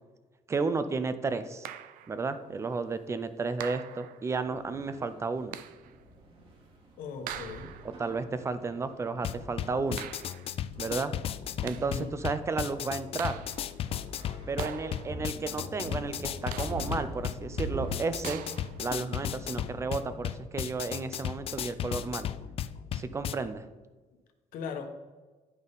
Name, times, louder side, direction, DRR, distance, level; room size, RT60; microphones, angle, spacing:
voice 1, 0.5-1.7 2.1-5.6 7.8-10.1 10.8-11.1 11.6-13.4 14.5-18.4 18.8-22.3 22.9-23.7, right 4 dB, 20° right, 12 dB, 0.5 m, -33 dB
sound 1, 1.6-2.2 3.6-4.3 5.5-6.0 7.3-8.0 10.0-10.6 11.4-12.1 13.2-13.8 14.6-15.3 16.5-17.1 18.2-18.8, right 10 dB, 85° right, 0.5 m, -42 dB
sound 2, 4.3-20.0, right 2 dB, 40° right, 1.4 m, -46 dB
voice 2, 7.0-7.7 11.8-12.1 24.5-24.9, left 5 dB, 80° left, 5 dB, 1.2 m, -38 dB
sound 3, 9.2-23.3, left 10 dB, 45° left, 0.3 m, -35 dB
10.0 x 5.5 x 4.0 m, 1.3 s
cardioid pair, 160°, 14 cm